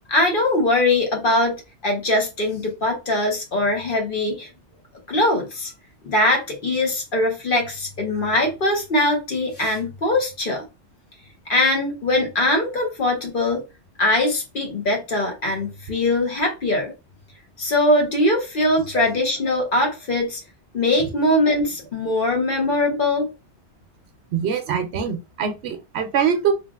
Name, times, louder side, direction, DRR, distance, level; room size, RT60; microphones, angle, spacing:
voice 1, 0.1-4.5 5.1-5.7 6.0-10.6 11.5-13.6 14.0-16.9 17.6-20.4 20.7-23.3, left 1 dB, 50° left, 1.0 m, -21 dB
voice 2, 24.3-26.5, right 7 dB, 70° right, 0.8 m, -23 dB
3.2 x 2.4 x 2.3 m
omnidirectional pair, 1.2 m